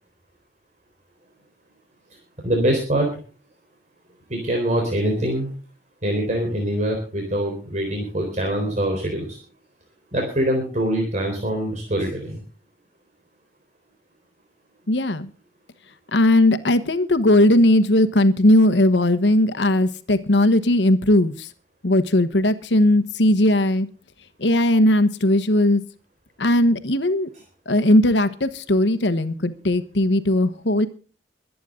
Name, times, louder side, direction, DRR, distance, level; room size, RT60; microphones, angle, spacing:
voice 1, 2.4-3.1 4.3-5.5 6.0-9.4 10.1-12.4, right 1 dB, 40° right, 2 dB, 3.9 m, -24 dB
voice 2, 14.9-15.3 16.1-21.5 21.8-23.9 24.4-25.8 26.4-27.3 27.7-30.9, left 1 dB, 85° left, 13 dB, 1.2 m, -18 dB
23.5 x 9.4 x 3.8 m, 0.37 s
head